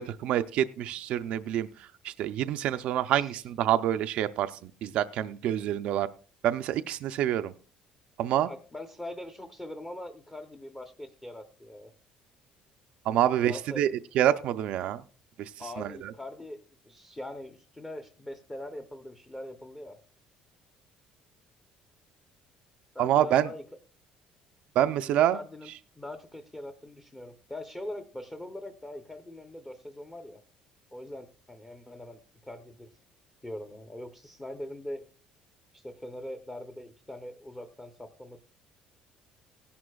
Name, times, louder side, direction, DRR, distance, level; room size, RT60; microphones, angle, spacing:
voice 1, 0.0-6.1 6.4-7.5 8.2-8.5 13.1-15.0 15.4-15.5 15.8-16.1 23.0-23.5 24.8-25.4, right 11 dB, 60° right, 10 dB, 0.4 m, -27 dB
voice 2, 8.3-11.9 13.4-13.9 15.6-16.6 16.8-20.0 22.9-23.6 24.9-25.7 26.0-30.4 30.9-32.9 33.4-35.0 35.7-38.4, left 1 dB, 10° left, 7 dB, 0.7 m, -42 dB
17.5 x 11.0 x 2.3 m, 0.37 s
cardioid pair, 170°, 2 cm